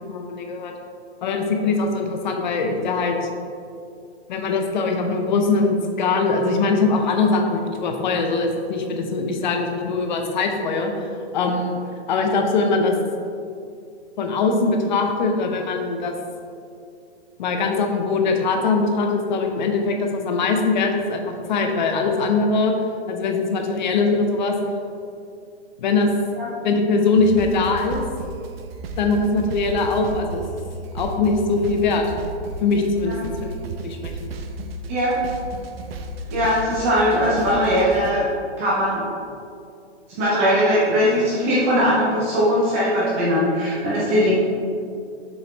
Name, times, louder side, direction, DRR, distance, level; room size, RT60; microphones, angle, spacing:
voice 1, 0.1-0.7 1.2-3.3 4.3-11.8 12.1-12.9 14.2-16.1 17.4-22.7 23.1-24.6 25.8-26.1 26.6-28.0 29.0-30.4 30.9-32.0 32.6-33.5 33.8-34.3, left 3 dB, 45° left, 4 dB, 0.7 m, -22 dB
sound 1, 27.2-38.1, right 3 dB, 60° right, 0.7 m, -34 dB
voice 2, 36.3-38.3 38.6-39.0 40.2-44.3, equal, 15° right, -7 dB, 0.4 m, -20 dB
6.8 x 4.0 x 4.2 m, 2.4 s
hypercardioid pair, 160°, 34 cm